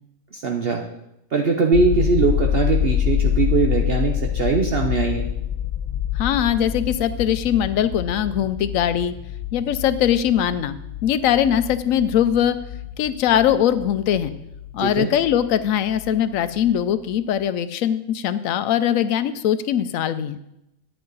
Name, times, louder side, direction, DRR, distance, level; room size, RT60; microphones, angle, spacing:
voice 1, 0.3-0.8 1.3-5.3 14.8-15.1, right 4 dB, 50° right, 3 dB, 0.8 m, -21 dB
sound 1, 1.7-15.5 15.9-16.8, left 10 dB, 60° left, 0.5 m, -27 dB
voice 2, 6.1-9.1 9.5-10.8 11.0-12.6 13.0-14.3 14.7-20.4, left 10 dB, 75° left, 13 dB, 1.0 m, -21 dB
10.5 x 8.0 x 3.9 m, 0.85 s
omnidirectional pair, 1.5 m